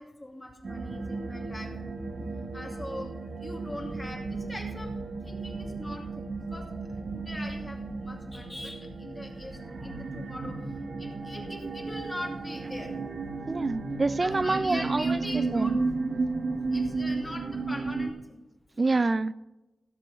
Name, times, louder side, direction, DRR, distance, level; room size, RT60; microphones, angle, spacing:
voice 1, 0.0-1.7 2.0-3.1 3.4-4.9 5.2-6.6 6.9-10.6 11.0-12.9 14.2-15.8 16.3-16.4 16.7-18.4, left 1 dB, 15° left, 0 dB, 2.5 m, -41 dB
sound 1, 0.6-18.1, right 3 dB, 55° right, 1.3 m, -33 dB
voice 2, 13.5-15.1 15.3-15.8 18.8-19.3, right 3 dB, 35° right, 16 dB, 0.5 m, -27 dB
17.0 x 6.5 x 5.3 m, 1.0 s
wide cardioid pair, 100°, 0 cm